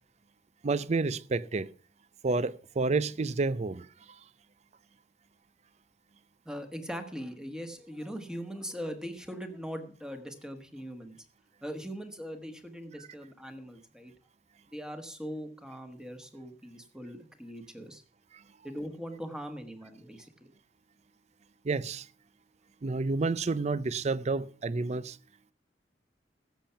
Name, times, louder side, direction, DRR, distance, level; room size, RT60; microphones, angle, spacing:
voice 1, 0.6-1.7 2.2-3.9 21.6-22.1 22.8-25.2, right 3 dB, 40° right, 0.5 m, -29 dB
voice 2, 6.4-11.2 11.6-14.1 14.7-18.0 18.6-20.5, equal, 5° right, 1.4 m, -41 dB
15.5 x 7.3 x 5.7 m
head